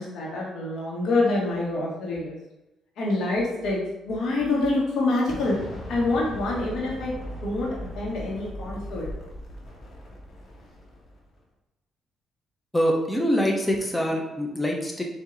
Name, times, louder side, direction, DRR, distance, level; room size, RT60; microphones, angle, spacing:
voice 1, 0.0-2.4 3.0-3.8 4.0-5.5 5.9-7.1 7.4-7.7 7.9-9.1, left 2 dB, 80° left, -3 dB, 1.4 m, -26 dB
Explosion, 5.3-11.3, equal, 50° left, 1.3 m, -39 dB
voice 2, 12.7-15.0, equal, 10° left, 0 dB, 0.7 m, -24 dB
4.4 x 2.7 x 3.9 m, 0.96 s
cardioid pair, 90°, 0 cm